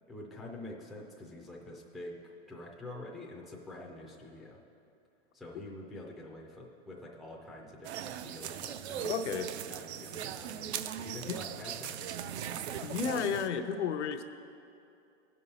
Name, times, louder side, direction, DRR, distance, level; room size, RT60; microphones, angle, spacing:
voice 1, 0.1-2.2 2.5-4.6 5.3-9.3 9.7-12.1, left 1 dB, ahead, -3 dB, 0.4 m, -46 dB
sound 1, 7.8-13.5, right 9 dB, 70° right, 0.5 m, -39 dB
voice 2, 9.0-9.5 11.3-11.4 12.8-14.2, left 6 dB, 85° left, 7 dB, 0.7 m, -32 dB
16.0 x 5.4 x 4.1 m, 2.6 s
hypercardioid pair, 145°, 34 cm